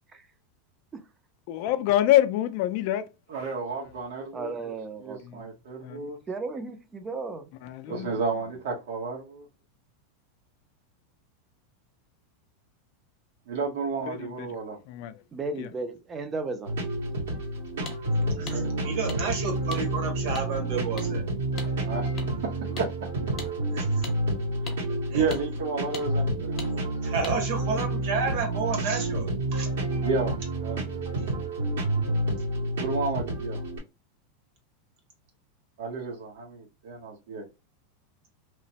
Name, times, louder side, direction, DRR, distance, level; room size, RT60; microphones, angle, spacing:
voice 1, 1.5-3.1 5.2-5.4 5.8-6.1 7.6-8.1 14.1-14.5 14.9-15.2 15.6-15.7, left 13 dB, 50° left, 0.4 m, -26 dB
voice 2, 3.3-4.5 5.0-6.2 7.9-9.5 13.5-14.8 18.2-18.7 21.8-22.1 22.4-22.9 25.1-27.3 30.0-31.2 32.8-33.6 35.8-37.4, right 4 dB, 75° right, 0.9 m, -32 dB
voice 3, 4.3-5.5 6.3-7.5 7.9-8.1 15.3-16.7, right 3 dB, 15° right, 0.4 m, -35 dB
sound 1, 16.6-33.8, right 1 dB, 90° right, 1.7 m, -29 dB
sound 2, 17.9-18.0 18.5-18.6 19.1-19.2 19.7-19.8 20.3-20.4 21.0-21.1 21.6-21.7 22.2-22.3 22.8-22.9 23.4-23.5 24.0-24.1 24.7-24.8 25.3-25.4 25.9-26.1 26.6-26.7 27.2-27.4, left 4 dB, 25° left, 0.7 m, -38 dB
voice 4, 18.4-21.2 22.7-22.8 23.7-24.0 25.1-25.2 27.0-29.7, right 4 dB, 55° right, 1.2 m, -31 dB
3.0 x 2.1 x 2.8 m
supercardioid pair, 160°, 0 cm